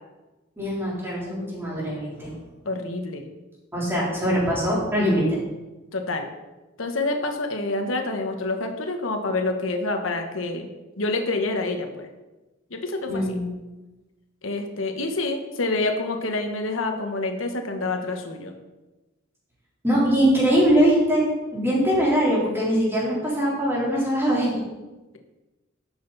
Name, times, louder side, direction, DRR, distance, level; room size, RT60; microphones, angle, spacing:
voice 1, 0.6-2.4 3.7-5.4 13.1-13.4 19.8-21.2 21.5-24.6, equal, 10° right, -6 dB, 3.7 m, -22 dB
voice 2, 2.6-3.2 5.9-6.3 6.8-10.7 11.0-12.1 12.7-13.2 14.4-18.5, left 2 dB, 90° left, 4 dB, 1.3 m, -27 dB
12.5 x 7.8 x 4.1 m, 1.1 s
head